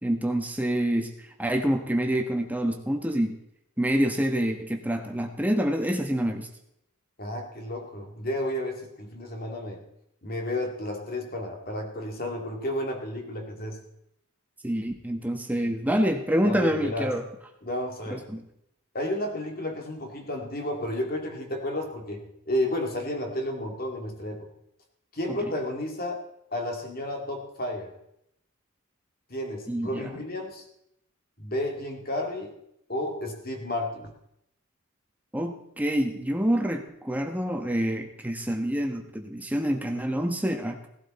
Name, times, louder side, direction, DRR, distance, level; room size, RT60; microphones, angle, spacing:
voice 1, 0.0-1.1 1.4-3.4 3.8-6.5 14.6-17.2 18.1-18.4 25.3-25.5 29.7-30.1 35.3-40.9, equal, 5° right, 4 dB, 1.2 m, -27 dB
voice 2, 7.2-9.8 10.2-13.8 16.4-17.1 17.6-18.3 18.9-24.5 25.1-26.2 26.5-27.9 29.3-30.6 31.4-32.5 32.9-34.1, left 1 dB, 45° left, 2 dB, 2.3 m, -32 dB
17.5 x 12.0 x 4.3 m, 0.79 s
head